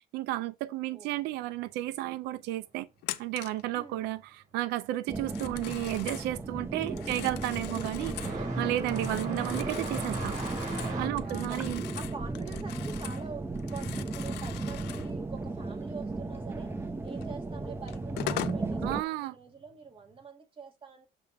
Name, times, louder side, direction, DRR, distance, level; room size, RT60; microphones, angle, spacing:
voice 1, 0.1-2.9 3.2-10.3 11.0-11.8 18.8-19.3, right 15 dB, 90° right, 0.5 m, -33 dB
voice 2, 0.9-1.4 3.7-4.0 7.1-7.3 11.2-16.7 17.0-21.1, right 5 dB, 30° right, 2.3 m, -46 dB
Telephone, 3.0-3.6 5.2-6.3 6.8-8.4 8.8-13.3 13.5-15.1 17.2-17.3 17.9-18.6, left 14 dB, 85° left, 0.7 m, -41 dB
sound 1, 5.1-19.0, right 3 dB, 15° right, 0.9 m, -35 dB
sound 2, 6.2-14.5 14.8-15.8 16.8-16.9 17.7-17.8 19.6-19.7, right 2 dB, 50° right, 4.3 m, -39 dB
6.9 x 3.4 x 5.8 m
cardioid pair, 110°, 17 cm